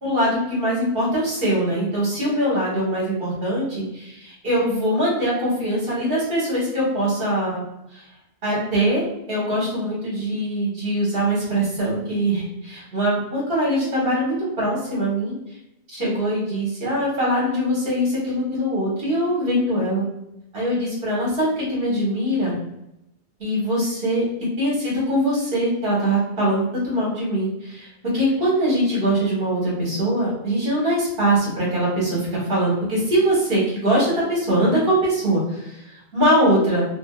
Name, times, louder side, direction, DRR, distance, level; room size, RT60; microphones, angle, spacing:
voice 1, 0.0-7.6 7.9-8.0 8.4-15.3 15.9-20.0 20.5-22.6 23.4-24.2 24.6-36.8, right 1 dB, 55° right, -5 dB, 1.4 m, -22 dB
3.6 x 2.1 x 2.3 m, 0.85 s
omnidirectional pair, 1.1 m